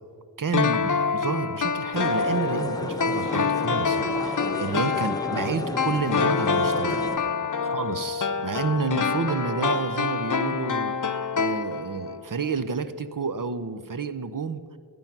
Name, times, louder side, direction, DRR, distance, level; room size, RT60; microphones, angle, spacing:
voice 1, 0.4-7.0 7.6-14.6, right 5 dB, 45° right, 12 dB, 0.9 m, -30 dB
sound 1, 0.5-12.2 12.4-12.5, left 5 dB, 45° left, 0.8 m, -26 dB
sound 2, 1.9-7.2, left 1 dB, 10° left, 1.2 m, -34 dB
15.5 x 9.5 x 6.0 m, 2.3 s
cardioid pair, 50°, 43 cm